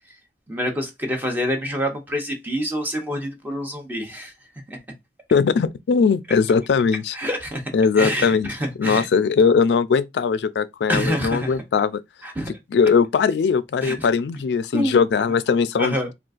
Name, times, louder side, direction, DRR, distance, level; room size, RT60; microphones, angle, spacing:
voice 1, 0.5-4.3 4.7-4.8 7.1-7.6 8.0-9.1 10.9-11.6 12.2-12.5 13.8-14.1 14.7-15.0 15.8-16.1, equal, 10° right, 0.6 m, -26 dB
voice 2, 5.3-7.2 7.7-8.5 8.8-12.0 12.7-16.1, left 5 dB, 65° left, 0.3 m, -20 dB
3.8 x 2.3 x 2.4 m
head